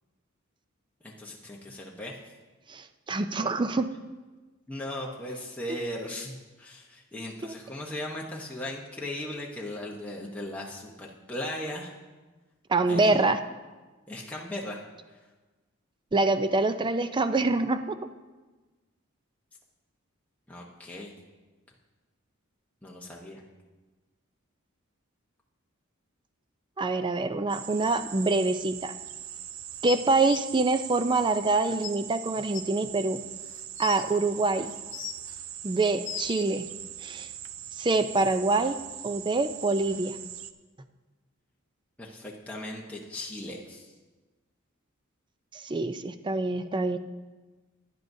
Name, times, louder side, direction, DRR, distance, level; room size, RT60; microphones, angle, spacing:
voice 1, 1.0-2.2 4.7-11.9 12.9-13.2 14.1-14.8 15.1-15.3 20.5-21.1 22.8-23.4 42.0-43.9, left 1 dB, 5° left, -3 dB, 0.9 m, -38 dB
voice 2, 2.7-3.9 7.4-7.5 12.7-13.4 16.1-18.0 26.8-28.9 29.8-33.2 33.8-34.7 35.6-36.7 37.0-37.3 37.8-38.8 39.0-40.2 45.5-47.0, right 3 dB, 20° right, 10 dB, 0.5 m, -25 dB
sound 1, 27.5-40.5, right 10 dB, 70° right, 0.6 m, -41 dB
sound 2, 29.8-30.4 31.4-31.5 31.8-31.9 32.5-32.6 33.4-34.0 34.7-35.3 35.8-36.4 37.4-37.5, left 12 dB, 60° left, 0.5 m, -37 dB
16.5 x 10.5 x 2.7 m, 1.3 s
head